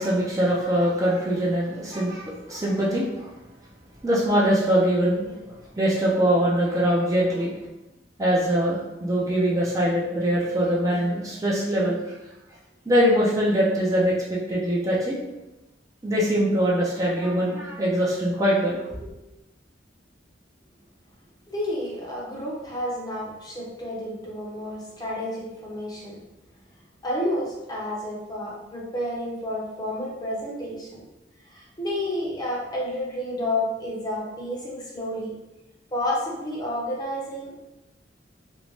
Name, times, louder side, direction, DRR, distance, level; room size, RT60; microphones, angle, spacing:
voice 1, 0.0-3.3 4.0-7.6 8.2-12.2 12.9-15.2 16.0-19.1, equal, 20° right, -5 dB, 0.4 m, -23 dB
voice 2, 21.5-26.2 27.0-31.0 31.5-35.3 35.9-37.6, left 1 dB, 20° left, -4 dB, 0.6 m, -30 dB
2.5 x 2.1 x 3.0 m, 0.97 s
head